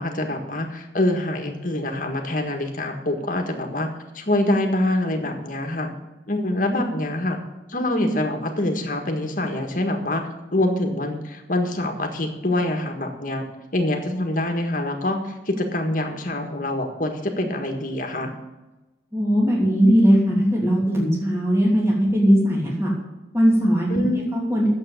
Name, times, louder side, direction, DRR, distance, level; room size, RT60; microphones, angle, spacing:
voice 1, 0.0-5.9 6.3-7.4 7.7-13.4 13.7-18.3 23.9-24.2, left 1 dB, 45° left, 3 dB, 1.6 m, -25 dB
voice 2, 19.1-22.9 23.3-24.0 24.3-24.7, equal, 15° right, -3 dB, 2.9 m, -19 dB
9.7 x 7.6 x 7.9 m, 1.1 s
head